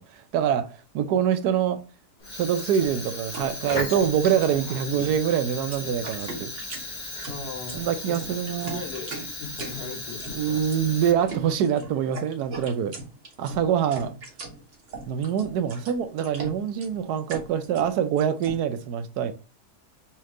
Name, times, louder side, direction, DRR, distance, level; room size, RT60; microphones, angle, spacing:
voice 1, 0.0-1.8 2.3-6.5 7.1-7.2 7.7-8.8 10.3-13.0 13.4-14.2 15.1-19.3, right 9 dB, 75° right, 1.1 m, -25 dB
Fire, 2.2-11.5, left 2 dB, 30° left, 1.3 m, -36 dB
sound 1, 2.6-18.6, right 3 dB, 50° right, 1.4 m, -40 dB
voice 2, 7.3-10.6, left 4 dB, 70° left, 1.5 m, -39 dB
4.3 x 3.2 x 3.6 m
omnidirectional pair, 1.8 m